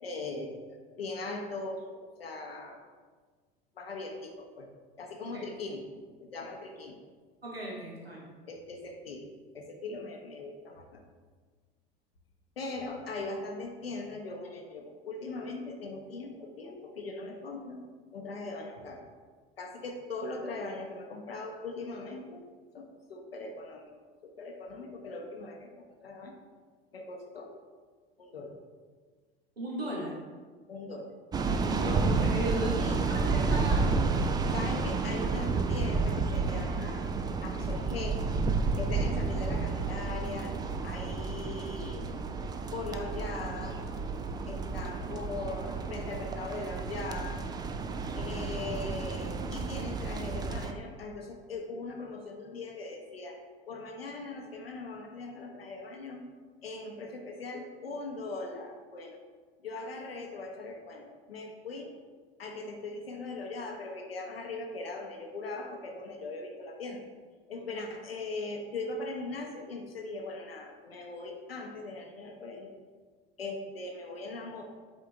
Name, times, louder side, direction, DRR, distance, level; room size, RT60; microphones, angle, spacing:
voice 1, 0.0-2.8 3.7-4.7 5.0-5.8 6.2-6.9 8.5-9.3 9.5-11.0 12.6-17.8 18.1-19.1 19.6-22.4 22.7-24.0 24.2-26.3 26.9-27.5 28.2-28.6 30.7-31.1 32.7-33.1 34.5-37.1 37.4-38.3 38.7-40.6 40.8-42.2 42.7-43.8 44.5-47.4 48.2-56.3 56.6-59.2 59.6-61.9 62.4-67.0 67.5-72.7 73.4-74.6, left 3 dB, 80° left, 2 dB, 1.0 m, -40 dB
voice 2, 7.4-8.2 29.6-30.1 31.6-32.9 33.3-34.1, right 1 dB, 90° right, -4 dB, 1.3 m, -36 dB
sound 1, 31.3-50.7, right 4 dB, 15° right, 0.3 m, -31 dB
8.0 x 3.7 x 3.5 m, 1.5 s
figure-of-eight pair, 75°, 29 cm